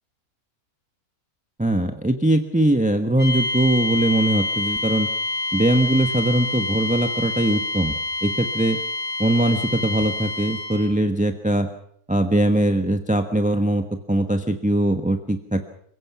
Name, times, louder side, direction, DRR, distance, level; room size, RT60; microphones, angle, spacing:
voice 1, 1.6-5.1 5.5-8.8 9.2-11.7 12.1-15.7, right 1 dB, 5° right, 6 dB, 1.0 m, -21 dB
sound 1, 3.2-10.9, left 2 dB, 50° right, 6.8 m, -27 dB
27.5 x 16.5 x 6.0 m, 0.67 s
omnidirectional pair, 1.6 m